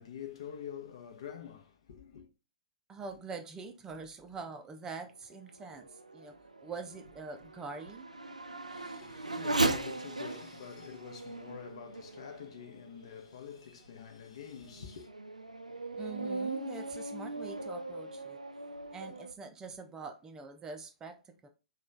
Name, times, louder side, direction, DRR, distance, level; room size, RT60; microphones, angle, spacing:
voice 1, 0.0-2.3 8.7-15.1, left 8 dB, 55° left, 0.7 m, -47 dB
voice 2, 2.9-6.3 6.6-8.1 16.0-18.4 18.9-21.5, right 4 dB, 15° right, 0.4 m, -44 dB
Race car auto racing / Accelerating revving vroom, 5.3-13.2 13.9-14.0 14.6-19.3, right 2 dB, 90° right, 0.3 m, -38 dB
3.0 x 2.3 x 3.7 m
figure-of-eight pair, 115°, 4 cm